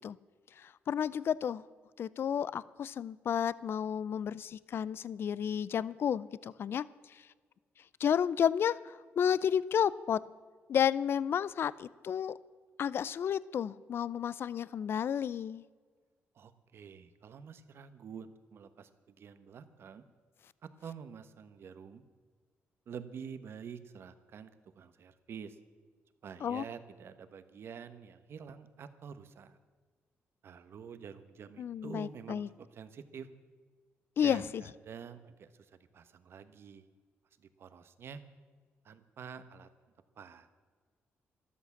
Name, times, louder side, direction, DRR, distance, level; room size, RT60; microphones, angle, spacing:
voice 1, 0.6-1.6 2.0-7.2 8.0-10.2 10.7-12.3 12.8-15.6 26.4-26.6 31.6-32.5 34.2-34.6, left 8 dB, 55° left, 19 dB, 0.5 m, -32 dB
voice 2, 16.3-20.0 20.6-22.0 22.9-25.6 26.2-29.6 30.4-33.3 34.2-36.9 37.4-38.2 38.8-39.7 40.2-40.5, right 7 dB, 60° right, 12 dB, 1.1 m, -48 dB
13.0 x 13.0 x 7.2 m, 1.5 s
cardioid pair, 120°, 5 cm